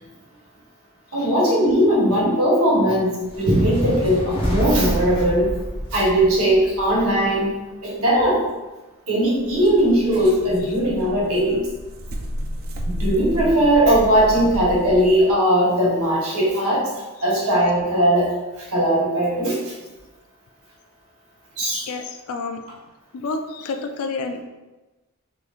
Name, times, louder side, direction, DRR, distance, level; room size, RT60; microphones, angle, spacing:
voice 1, 1.1-5.5 5.9-8.4 9.1-11.6 12.8-16.9 17.2-19.7 21.6-21.9, right 1 dB, 75° right, -5 dB, 1.1 m, -19 dB
sound 1, 3.2-7.5, equal, 25° left, 0.8 m, -28 dB
sound 2, 9.3-15.3, equal, 45° right, 0.3 m, -32 dB
voice 2, 21.6-22.6 23.1-24.4, left 4 dB, 70° left, 6 dB, 0.3 m, -30 dB
3.6 x 3.0 x 2.4 m, 1.1 s
head